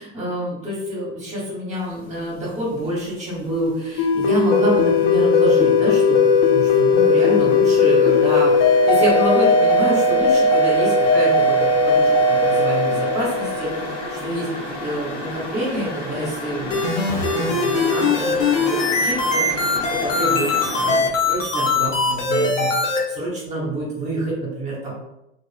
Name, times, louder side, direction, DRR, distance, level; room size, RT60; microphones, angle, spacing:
voice 1, 0.0-24.9, right 1 dB, 20° right, -5 dB, 1.1 m, -27 dB
sound 1, 2.0-2.4 2.7-4.3 4.6-21.0, left 1 dB, 60° left, 1.1 m, -33 dB
sound 2, 4.0-14.3, left 3 dB, 30° left, 0.4 m, -17 dB
sound 3, 16.7-23.0, left 3 dB, 80° left, 0.8 m, -21 dB
2.7 x 2.4 x 2.3 m, 0.88 s
hypercardioid pair, 95°, 37 cm